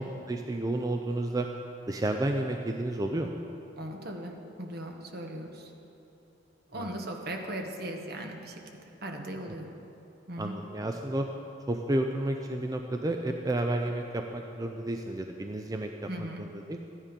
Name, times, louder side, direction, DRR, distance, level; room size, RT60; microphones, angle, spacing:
voice 1, 0.0-1.5 1.9-3.4 6.7-6.9 10.4-11.3 11.7-16.8, right 1 dB, 20° right, 4 dB, 0.4 m, -31 dB
voice 2, 3.8-5.7 6.7-8.6 9.0-9.7 10.3-10.5 16.1-16.5, right 1 dB, 55° right, 2 dB, 1.2 m, -38 dB
13.0 x 9.9 x 5.2 m, 2.9 s
head